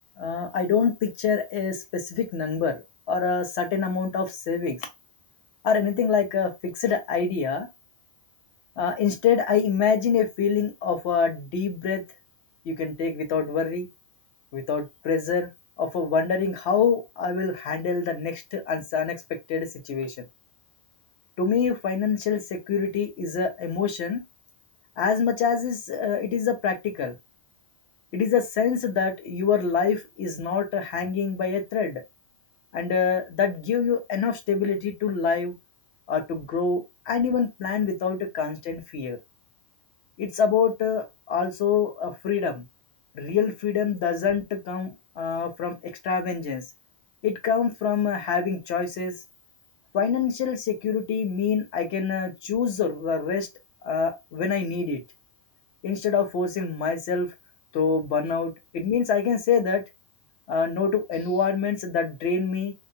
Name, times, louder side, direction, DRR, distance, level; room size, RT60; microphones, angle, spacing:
voice 1, 0.2-2.8 3.1-4.8 5.6-7.7 8.8-12.0 12.7-13.9 14.5-15.5 15.8-19.2 19.5-20.1 21.4-24.2 25.0-27.1 28.1-32.0 32.7-35.5 36.1-39.2 40.2-42.6 43.1-45.7 46.0-46.6 47.2-49.1 49.9-53.5 53.8-55.0 55.8-57.3 57.7-59.8 60.5-62.7, left 6 dB, 85° left, 0.9 m, -25 dB
3.0 x 2.0 x 2.6 m
omnidirectional pair, 1.1 m